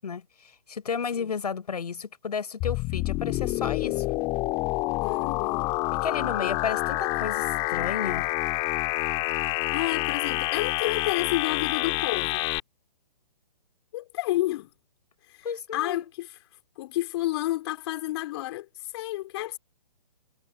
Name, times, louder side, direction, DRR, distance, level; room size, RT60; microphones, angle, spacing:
voice 1, 0.7-4.0 5.9-8.3 15.4-16.1, left 6 dB, 70° left, 6.3 m, -32 dB
sound 1, 2.6-12.6, left 22 dB, 25° left, 1.8 m, -28 dB
voice 2, 5.0-5.7 9.7-12.5 13.9-14.7 15.3-15.5 15.7-16.3 16.8-19.6, left 16 dB, 40° left, 3.7 m, -30 dB
figure-of-eight pair, 135°, 21 cm